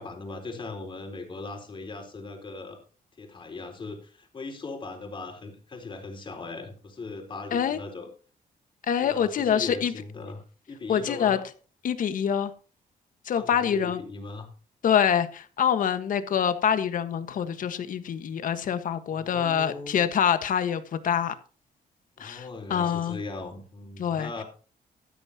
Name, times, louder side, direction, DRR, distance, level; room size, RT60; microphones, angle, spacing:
voice 1, 0.0-2.8 3.2-8.1 9.0-10.4 10.7-11.4 13.3-14.5 19.1-20.0 22.2-24.4, left 3 dB, 30° left, 4.0 m, -39 dB
voice 2, 8.8-9.9 10.9-11.4 11.8-12.5 13.2-14.0 14.8-21.3 22.2-23.2 24.0-24.3, left 8 dB, 60° left, 1.5 m, -25 dB
13.5 x 13.0 x 2.9 m
cardioid pair, 145°, 15 cm